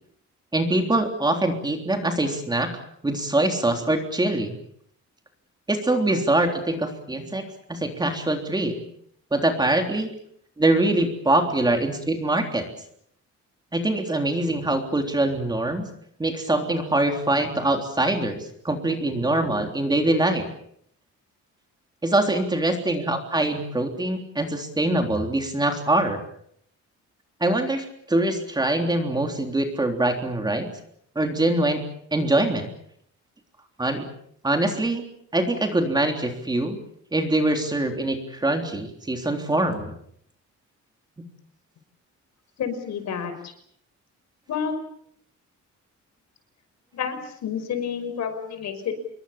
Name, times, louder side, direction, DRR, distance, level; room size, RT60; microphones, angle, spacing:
voice 1, 0.5-2.7 3.0-4.5 5.7-7.4 7.7-8.8 9.3-10.1 10.6-12.7 13.7-15.9 16.2-20.5 22.0-26.2 27.4-30.7 31.2-31.8 32.1-32.7 33.8-34.1 34.4-35.0 35.3-36.8 37.1-39.9, right 2 dB, 15° right, 4 dB, 3.5 m, -23 dB
voice 2, 42.6-43.5 44.5-44.8 46.9-48.9, left 7 dB, 65° left, 9 dB, 5.7 m, -29 dB
27.5 x 22.5 x 7.3 m, 0.69 s
cardioid pair, 170°, 29 cm